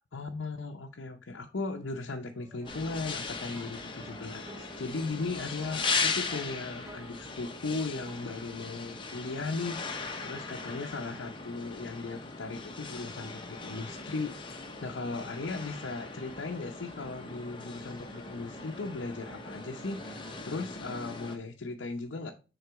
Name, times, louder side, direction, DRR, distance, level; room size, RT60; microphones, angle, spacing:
voice 1, 0.1-22.3, left 3 dB, 85° left, 0.7 m, -37 dB
sound 1, 2.1-11.8 12.5-15.4 15.7-20.4, right 1 dB, 15° right, 0.5 m, -55 dB
sound 2, 2.7-21.4, left 4 dB, 25° left, 0.9 m, -38 dB
6.7 x 4.0 x 4.6 m
head